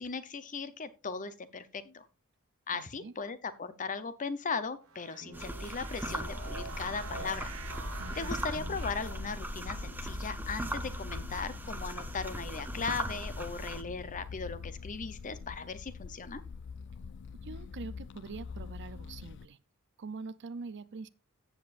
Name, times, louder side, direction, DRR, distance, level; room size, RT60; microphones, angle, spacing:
voice 1, 0.0-2.1 2.7-7.5 8.1-16.4, left 5 dB, 35° left, 0.8 m, -38 dB
voice 2, 2.7-3.2 8.0-8.3 17.4-19.6 20.0-21.1, right 4 dB, 55° right, 0.5 m, -44 dB
sound 1, 4.9-9.3, right 4 dB, 70° right, 1.2 m, -46 dB
sound 2, 5.3-13.8, right 1 dB, 10° right, 0.8 m, -39 dB
sound 3, 6.4-19.5, left 5 dB, 55° left, 0.3 m, -45 dB
14.0 x 7.7 x 2.5 m
head